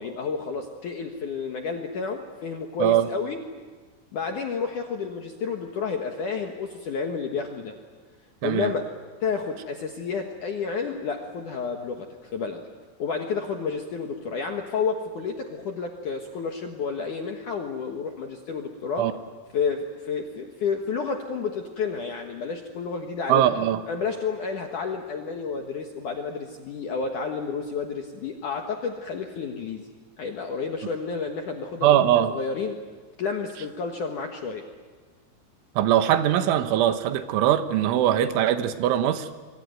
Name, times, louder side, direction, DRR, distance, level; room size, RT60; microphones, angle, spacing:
voice 1, 0.0-3.4 4.1-7.8 8.4-8.9 9.2-12.6 13.0-19.1 19.5-23.4 23.9-29.9 30.2-32.8 33.2-34.6, left 5 dB, 65° left, 3 dB, 2.1 m, -30 dB
voice 2, 23.3-23.8 31.8-32.3 35.8-39.3, right 11 dB, 80° right, 10 dB, 3.6 m, -21 dB
26.5 x 23.0 x 9.2 m, 1.4 s
omnidirectional pair, 5.6 m